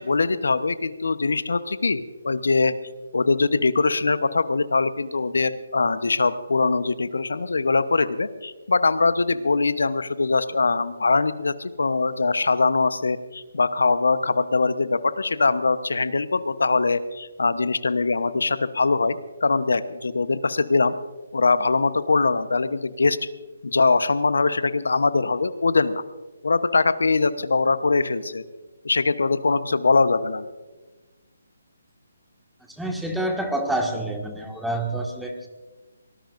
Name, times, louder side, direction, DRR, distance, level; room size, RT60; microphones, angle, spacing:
voice 1, 0.0-2.7 3.1-20.9 21.3-23.3 23.6-26.0 26.4-28.4 28.8-30.4, left 3 dB, 75° left, 13 dB, 0.9 m, -22 dB
voice 2, 32.8-35.5, right 1 dB, ahead, 1 dB, 1.8 m, -27 dB
24.0 x 19.0 x 2.6 m, 1.3 s
figure-of-eight pair, 145°, 0 cm